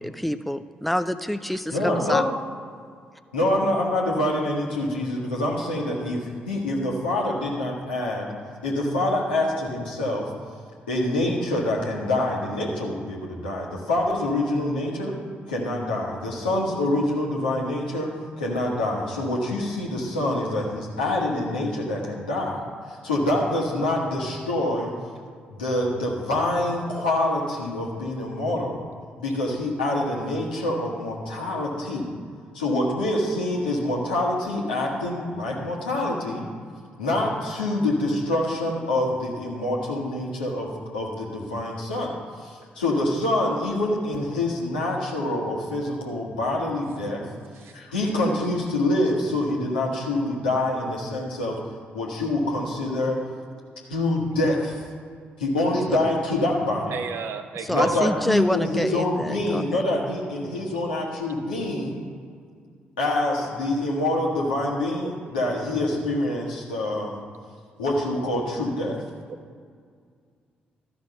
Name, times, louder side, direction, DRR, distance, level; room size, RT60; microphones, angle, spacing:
voice 1, 0.0-2.3 55.9-56.0 57.7-59.9, left 1 dB, ahead, 11 dB, 0.4 m, -27 dB
voice 2, 1.7-2.3 3.3-8.3 8.6-10.3 10.9-15.1 15.5-18.1 18.4-24.9 25.5-28.8 29.2-32.1 32.5-36.4 37.0-42.1 42.4-47.3 47.7-51.6 51.9-53.2 53.9-54.8 55.4-56.9 57.7-62.0 63.0-67.2 67.8-69.0, left 1 dB, 80° left, -3 dB, 1.4 m, -26 dB
voice 3, 56.8-58.1 64.9-65.1 65.8-66.0 69.3-69.4, right 6 dB, 60° right, 8 dB, 0.7 m, -35 dB
13.0 x 5.2 x 5.4 m, 2.1 s
figure-of-eight pair, 40°, 5 cm